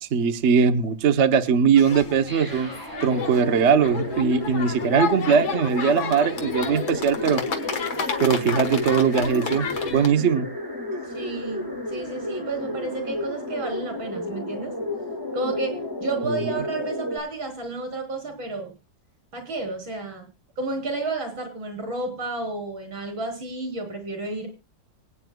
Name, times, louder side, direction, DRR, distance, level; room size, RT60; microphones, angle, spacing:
voice 1, 0.0-2.7 3.0-7.4 8.2-10.5, right 6 dB, 45° right, 1.0 m, -20 dB
sound 1, 1.8-10.1, left 6 dB, 80° left, 2.3 m, -31 dB
sound 2, 2.3-17.2, left 1 dB, 10° right, 2.9 m, -33 dB
voice 2, 11.1-14.7 15.3-18.7 19.3-20.3 20.6-24.5, right 2 dB, 75° right, 4.6 m, -31 dB
24.5 x 9.4 x 2.3 m
omnidirectional pair, 2.1 m